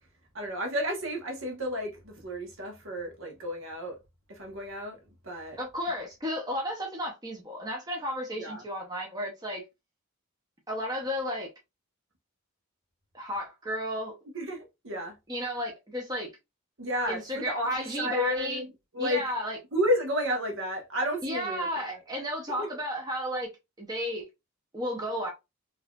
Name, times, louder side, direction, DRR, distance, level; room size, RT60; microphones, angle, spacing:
voice 1, 0.3-4.0 4.3-5.0 5.2-5.6 8.4-8.6 14.3-15.1 16.8-18.7 18.9-19.2 19.7-21.7 22.6-22.7, equal, 60° right, 1.1 m, -31 dB
voice 2, 5.6-9.6 10.7-11.5 13.1-14.1 15.3-16.3 17.1-18.6 19.0-19.6 21.2-23.5 23.8-24.2 24.7-25.3, equal, 20° right, 0.7 m, -33 dB
3.9 x 2.8 x 2.4 m
head